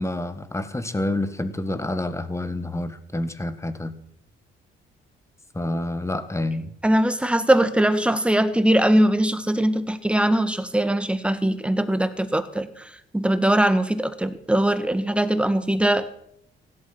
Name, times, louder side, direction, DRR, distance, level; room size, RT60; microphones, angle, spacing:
voice 1, 0.0-3.9 5.5-6.7, left 2 dB, 15° left, 12 dB, 1.6 m, -28 dB
voice 2, 6.8-16.3, right 1 dB, 5° right, 11 dB, 1.6 m, -21 dB
16.5 x 12.0 x 6.0 m, 0.70 s
cardioid pair, 90°, 20 cm